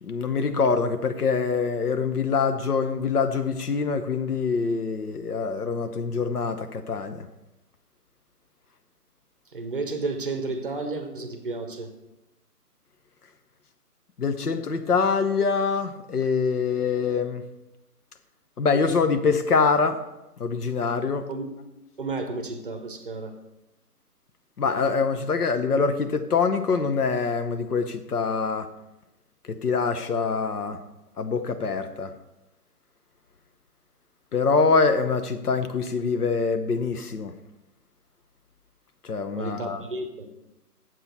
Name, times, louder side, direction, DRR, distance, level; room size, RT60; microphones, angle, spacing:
voice 1, 0.0-7.3 14.2-17.4 18.6-20.0 20.4-21.3 24.6-28.7 29.5-30.8 31.2-32.1 34.3-37.3 39.0-39.8, left 5 dB, 70° left, 9 dB, 1.0 m, -24 dB
voice 2, 9.5-11.9 21.3-21.5 22.0-23.3 39.4-40.3, right 3 dB, 35° right, 7 dB, 0.7 m, -32 dB
7.9 x 7.5 x 4.1 m, 0.97 s
figure-of-eight pair, 150°, 48 cm